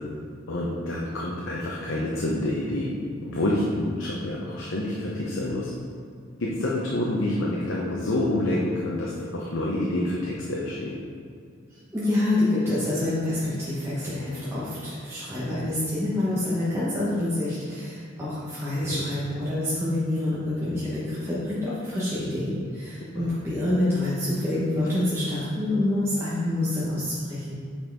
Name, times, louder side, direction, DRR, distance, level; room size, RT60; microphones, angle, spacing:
voice 1, 0.5-2.9 3.2-5.7 6.4-10.9 18.8-19.0 23.2-23.3, left 1 dB, 70° left, -4 dB, 0.7 m, -27 dB
voice 2, 11.9-27.6, left 1 dB, 15° right, -10 dB, 1.0 m, -27 dB
5.6 x 4.4 x 4.6 m, 2.2 s
head